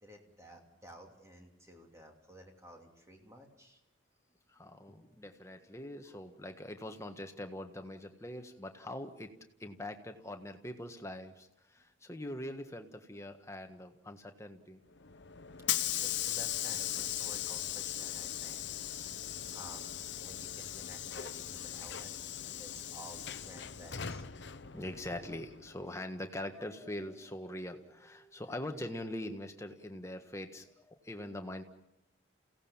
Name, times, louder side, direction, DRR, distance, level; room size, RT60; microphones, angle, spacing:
voice 1, 0.0-3.8 15.6-15.7 16.0-18.6 19.5-22.1 22.4-24.2, equal, 15° right, 2 dB, 2.9 m, -53 dB
voice 2, 4.5-9.3 9.6-14.8 20.7-20.8 24.5-31.6, left 1 dB, 15° left, 6 dB, 1.5 m, -43 dB
Hiss / Sliding door, 15.0-25.8, left 11 dB, 60° left, 0.9 m, -38 dB
29.5 x 17.0 x 7.2 m, 0.88 s
head